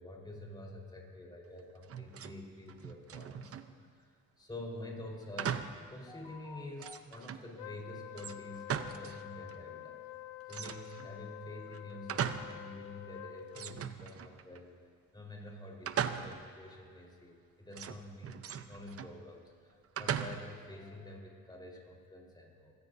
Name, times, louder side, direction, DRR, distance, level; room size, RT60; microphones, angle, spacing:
voice 1, 0.0-3.6 3.9-4.1 4.4-10.0 10.5-14.7 15.1-22.7, left 1 dB, 15° left, -1 dB, 4.3 m, -48 dB
sound 1, 1.8-2.4 2.7-3.7 5.4-5.9 6.3-6.4 6.8-7.5 8.2-9.2 9.5-9.6 10.5-11.1 11.7-12.6 13.0-13.1 13.5-14.6 15.9-16.6 17.7-19.2 20.0-20.6, right 8 dB, 50° right, 0.8 m, -39 dB
Wind instrument woodwind instrument, 7.6-13.9, left 16 dB, 80° left, 0.5 m, -48 dB
25.0 x 17.5 x 2.7 m, 2.2 s
cardioid pair, 90°, 30 cm